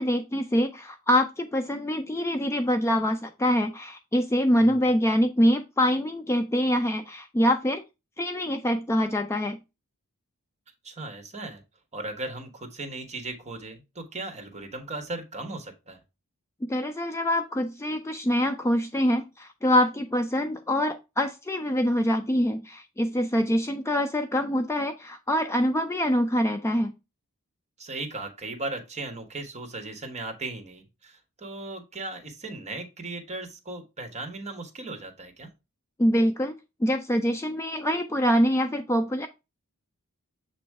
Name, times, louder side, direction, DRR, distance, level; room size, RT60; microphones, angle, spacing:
voice 1, 0.0-7.8 8.2-9.6 16.6-26.9 36.0-39.3, equal, 10° left, 7 dB, 0.4 m, -25 dB
voice 2, 4.5-4.9 10.8-11.6 11.9-16.0 27.8-35.5, right 2 dB, 30° right, 6 dB, 1.3 m, -37 dB
7.2 x 3.1 x 4.6 m, 0.26 s
head